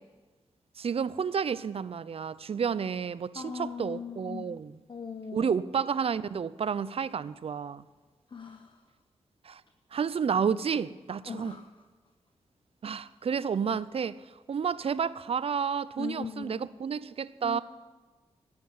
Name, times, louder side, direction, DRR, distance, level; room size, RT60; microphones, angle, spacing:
voice 1, 0.8-4.7 5.3-7.8 9.4-9.6 9.9-11.5 12.8-14.2 14.5-17.6, right 6 dB, 60° right, 0.5 m, -30 dB
voice 2, 3.3-4.5 4.9-5.5 8.3-8.8 11.2-11.8 16.0-16.7 17.4-17.6, left 5 dB, 45° left, 0.9 m, -40 dB
13.5 x 9.6 x 7.2 m
cardioid pair, 50°, 11 cm